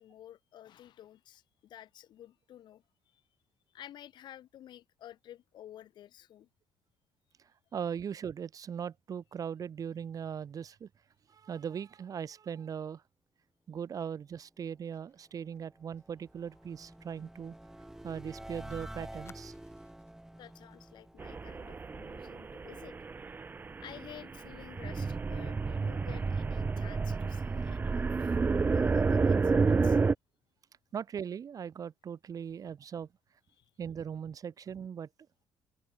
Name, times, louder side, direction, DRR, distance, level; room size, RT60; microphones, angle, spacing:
voice 1, 0.0-2.8 3.1-3.2 3.7-6.5 20.4-23.0 23.8-28.4 28.7-30.0 33.5-33.6, left 11 dB, 65° left, 1.8 m, -51 dB
voice 2, 7.7-10.9 11.3-13.0 13.7-17.5 18.0-19.5 30.9-33.1 33.8-35.1, right 7 dB, 45° right, 2.7 m, -39 dB
Fire, 14.9-18.4 18.6-18.7 19.2-20.2 20.6-20.8 21.1-21.4, left 5 dB, 30° left, 6.6 m, -64 dB
sound 1, 15.3-22.5, right 1 dB, 5° right, 4.0 m, -49 dB
sound 2, 21.2-30.1, right 4 dB, 25° right, 0.6 m, -30 dB
cardioid pair, 100°, 8 cm